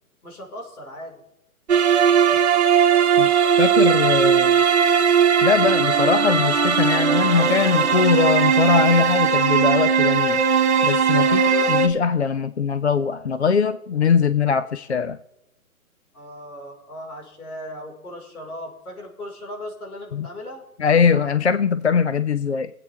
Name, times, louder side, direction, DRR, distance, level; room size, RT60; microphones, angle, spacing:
voice 1, 0.2-1.2 11.2-11.7 16.1-20.6, equal, 75° left, 0 dB, 4.8 m, -37 dB
sound 1, 1.7-11.9, right 7 dB, 45° right, 1.5 m, -18 dB
voice 2, 3.6-4.6 5.4-10.4 10.8-11.4 11.7-15.2 20.1-20.3 20.8-22.7, left 6 dB, 50° left, 12 dB, 0.5 m, -21 dB
22.5 x 8.4 x 3.5 m, 0.85 s
hypercardioid pair, 175°, 45 cm